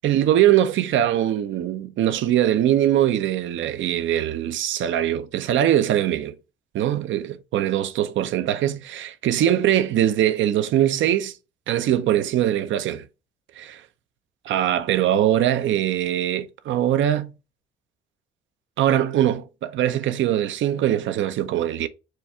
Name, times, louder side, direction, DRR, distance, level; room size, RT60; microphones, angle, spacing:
voice 1, 0.0-6.3 6.7-11.3 11.7-13.0 13.6-13.8 14.5-17.3 18.8-21.9, right 11 dB, 75° right, 0.6 m, -22 dB
4.6 x 2.4 x 4.3 m
cardioid pair, 90°, 20 cm